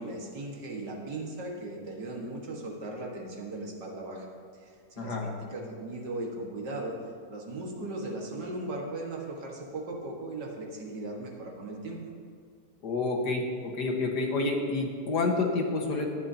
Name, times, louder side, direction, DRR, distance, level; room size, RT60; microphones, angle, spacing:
voice 1, 0.0-4.3 5.0-6.9 7.3-12.0, right 2 dB, 85° right, -1 dB, 2.4 m, -37 dB
voice 2, 5.0-5.3 12.8-16.1, left 3 dB, 80° left, 1 dB, 2.0 m, -29 dB
17.5 x 11.0 x 2.8 m, 2.3 s
omnidirectional pair, 1.8 m